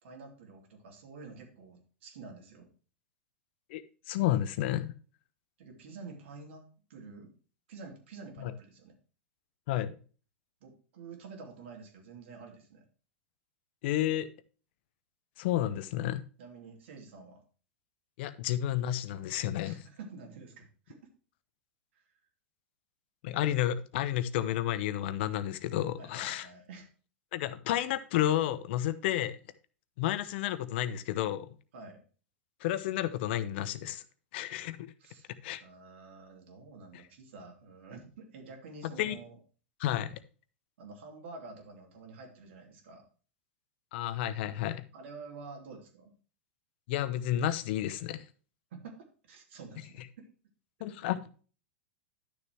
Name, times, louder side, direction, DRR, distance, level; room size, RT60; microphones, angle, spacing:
voice 1, 0.0-2.7 5.6-7.3 7.7-9.0 10.6-12.8 16.4-17.4 19.6-21.0 21.9-22.0 26.0-26.9 31.7-32.0 35.0-35.3 35.6-39.4 40.8-43.0 44.9-46.1 48.7-49.0 49.2-50.3, right 4 dB, 65° right, 2 dB, 2.9 m, -49 dB
voice 2, 4.1-4.9 8.4-8.5 9.7-9.9 13.8-14.3 15.4-16.2 18.2-19.8 23.2-26.5 27.3-29.4 30.0-31.5 32.6-34.0 34.3-34.8 35.4-35.6 39.0-39.2 39.8-40.1 43.9-44.9 46.9-48.2 50.8-51.3, left 12 dB, 60° left, 14 dB, 0.8 m, -31 dB
11.5 x 6.8 x 2.9 m, 0.38 s
hypercardioid pair, 100°, 7 cm